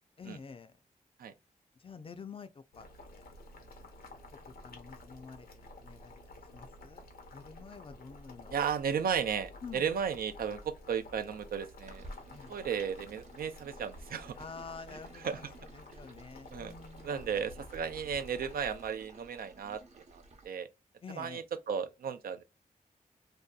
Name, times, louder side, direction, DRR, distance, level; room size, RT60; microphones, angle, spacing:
voice 1, 0.2-0.7 1.8-3.3 3.6-3.9 4.5-6.2 6.5-7.0 7.3-8.6 9.6-9.9 12.3-12.6 14.4-17.4 21.0-21.4, left 5 dB, 40° left, 0.4 m, -49 dB
Boiling, 2.7-18.9, left 1 dB, 90° left, 0.7 m, -52 dB
voice 2, 8.5-12.1 12.5-14.3 15.2-15.4 16.5-16.7 17.0-19.8 20.1-20.7 21.2-22.4, right 7 dB, 80° right, 0.4 m, -34 dB
sound 1, 11.9-20.5, right 1 dB, 50° right, 0.7 m, -54 dB
2.6 x 2.2 x 2.3 m
wide cardioid pair, 90°, 15 cm